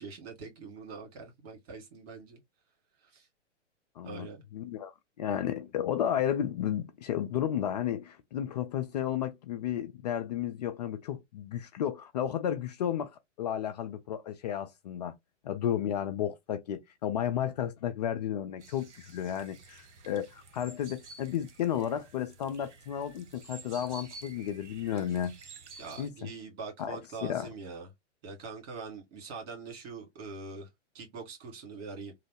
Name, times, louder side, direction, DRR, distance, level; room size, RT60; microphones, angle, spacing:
voice 1, 0.0-2.4 3.0-3.3 4.0-4.4 25.8-27.9 28.2-30.7 30.9-32.1, right 4 dB, 55° right, 1.8 m, -43 dB
voice 2, 4.0-4.9 5.2-13.1 13.4-15.1 15.4-25.3 26.0-26.1 26.8-27.5, left 10 dB, 35° left, 0.4 m, -33 dB
sound 1, 18.6-26.1, right 3 dB, 70° right, 0.9 m, -51 dB
3.1 x 2.0 x 3.1 m
figure-of-eight pair, 115°, 36 cm